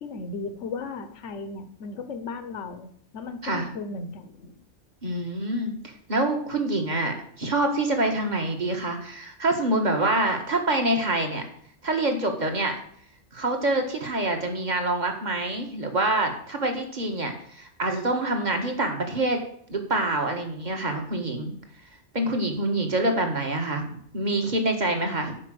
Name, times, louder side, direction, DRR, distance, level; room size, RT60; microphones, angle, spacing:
voice 1, 0.0-2.9 3.1-4.6, left 4 dB, 75° left, 8 dB, 1.3 m, -36 dB
voice 2, 5.0-11.4 11.8-12.8 13.3-19.4 19.7-21.5 22.1-25.3, right 2 dB, 35° right, 4 dB, 1.8 m, -26 dB
9.7 x 5.5 x 7.7 m, 0.62 s
omnidirectional pair, 1.2 m